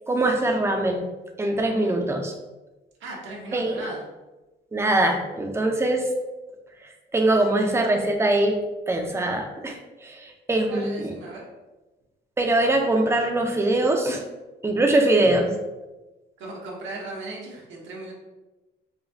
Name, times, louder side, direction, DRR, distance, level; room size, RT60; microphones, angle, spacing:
voice 1, 0.1-1.1 1.4-2.4 3.5-3.7 4.7-6.1 6.8-8.6 8.9-11.1 12.4-14.2 14.6-15.5, right 2 dB, 15° right, 3 dB, 0.5 m, -22 dB
voice 2, 3.0-4.0 10.7-11.4 15.2-15.4 16.4-18.1, right 2 dB, 75° right, -3 dB, 1.1 m, -37 dB
4.9 x 2.2 x 2.6 m, 1.1 s
cardioid pair, 90°, 20 cm